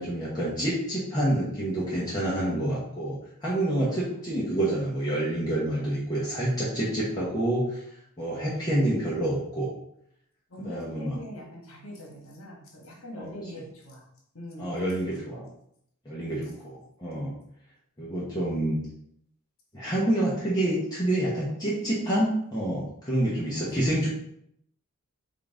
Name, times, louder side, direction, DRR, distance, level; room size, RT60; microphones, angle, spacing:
voice 1, 0.0-3.2 3.4-7.8 8.2-9.7 10.6-11.1 13.2-13.3 14.6-15.5 16.0-16.4 17.0-17.4 18.0-18.8 19.7-24.1, right 1 dB, 20° left, -7 dB, 0.8 m, -27 dB
voice 2, 3.7-4.5 10.5-14.0 14.3-14.8 16.2-16.5 23.2-23.5, left 1 dB, 65° left, -1 dB, 1.4 m, -43 dB
5.2 x 2.5 x 3.6 m, 0.74 s
head